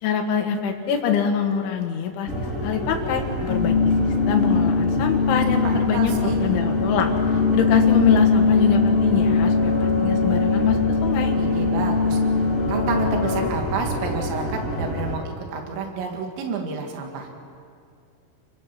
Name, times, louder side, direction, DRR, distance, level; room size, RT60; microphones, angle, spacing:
voice 1, 0.0-7.1 7.5-11.4, left 7 dB, 75° left, 4 dB, 4.1 m, -25 dB
sound 1, 2.3-15.2, equal, 20° right, 2.2 m, -29 dB
sound 2, 3.5-13.5, left 4 dB, 60° left, 2.7 m, -21 dB
voice 2, 5.6-6.4 11.4-12.2 12.6-17.3, right 5 dB, 70° right, 2 dB, 4.5 m, -30 dB
30.0 x 23.5 x 6.1 m, 2.4 s
omnidirectional pair, 5.5 m